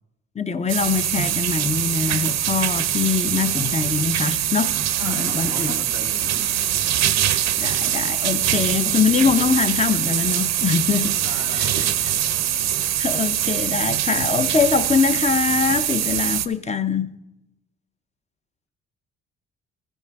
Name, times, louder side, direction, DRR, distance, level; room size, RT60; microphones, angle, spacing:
voice 1, 0.4-4.7 5.0-5.8 7.6-11.2 11.5-11.8 13.0-17.1, left 6 dB, 20° left, 0.6 m, -23 dB
sound 1, 0.7-16.5, right 11 dB, 60° right, 0.6 m, -23 dB
voice 2, 5.0-6.5 11.1-12.0, left 2 dB, 75° left, 3.0 m, -38 dB
14.5 x 5.5 x 4.7 m
cardioid pair, 90°, 30 cm